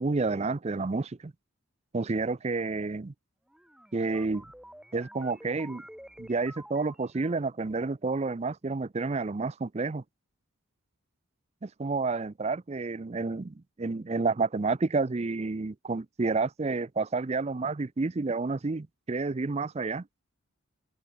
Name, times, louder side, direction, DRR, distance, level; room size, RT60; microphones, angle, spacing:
voice 1, 0.0-1.3 1.9-3.1 3.9-4.5 4.9-5.8 6.2-10.0 11.6-20.0, right 3 dB, 30° right, 0.5 m, -30 dB
sound 1, 3.5-7.7, equal, 5° right, 3.0 m, -50 dB
head